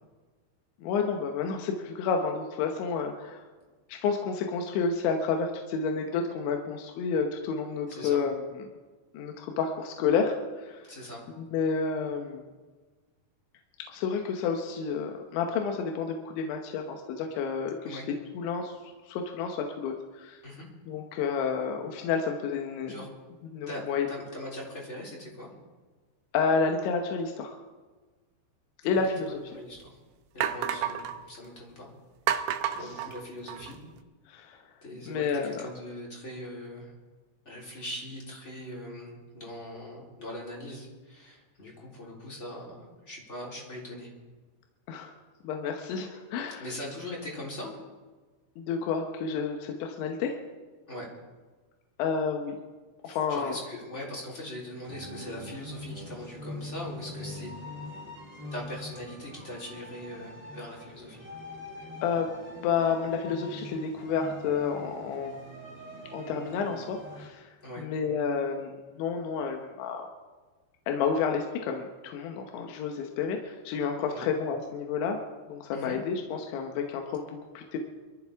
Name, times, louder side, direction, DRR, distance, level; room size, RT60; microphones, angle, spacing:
voice 1, 0.8-3.4 3.9-8.6 9.1-10.9 11.4-12.4 13.9-18.0 18.3-20.4 20.9-23.0 23.5-24.1 26.3-27.6 28.8-29.4 32.8-33.0 34.3-34.6 35.1-35.6 44.9-45.1 45.4-46.6 48.6-50.4 52.0-52.6 53.0-53.6 62.0-62.3 62.6-65.4 66.1-70.1 70.9-75.2 75.5-77.8, left 5 dB, 80° left, 3 dB, 3.4 m, -30 dB
voice 2, 7.9-8.2 10.8-11.2 17.8-18.1 20.4-20.7 22.8-23.1 23.7-23.8 24.1-25.5 28.8-29.9 30.3-31.9 32.7-33.8 34.8-36.9 37.4-44.1 46.6-47.8 50.9-51.1 53.0-57.5 58.5-61.2 67.6-67.9 74.1-74.3 75.7-76.0, left 1 dB, 15° left, -3 dB, 3.3 m, -41 dB
sound 1, 29.0-29.1 29.8-29.9 30.4-31.2 32.3-33.8, right 10 dB, 90° right, 3.2 m, -30 dB
sound 2, 54.8-67.3, left 1 dB, 5° right, 1.8 m, -43 dB
23.5 x 14.5 x 3.6 m, 1.3 s
omnidirectional pair, 5.3 m